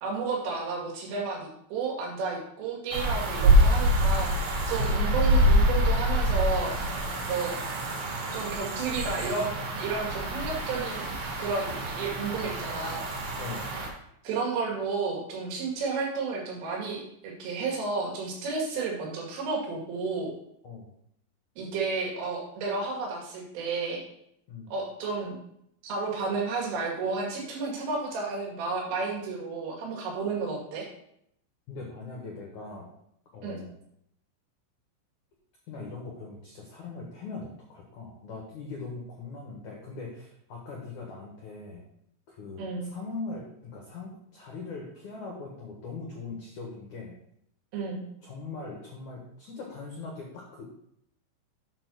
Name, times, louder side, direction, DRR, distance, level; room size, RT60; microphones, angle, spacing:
voice 1, 0.0-6.8 7.2-7.6 8.3-13.0 14.2-20.3 21.6-24.0 24.7-25.4 25.8-30.9 33.4-33.6 42.6-42.9 47.7-48.0, right 4 dB, 90° right, -2 dB, 4.7 m, -32 dB
sound 1, 2.9-13.9, equal, 70° right, 4.4 m, -26 dB
voice 2, 13.4-13.7 20.6-20.9 24.5-24.7 31.7-32.9 33.3-33.7 35.7-41.8 42.3-47.1 48.2-50.8, left 3 dB, 80° left, -1 dB, 1.7 m, -41 dB
8.9 x 4.4 x 6.2 m, 0.74 s
omnidirectional pair, 5.6 m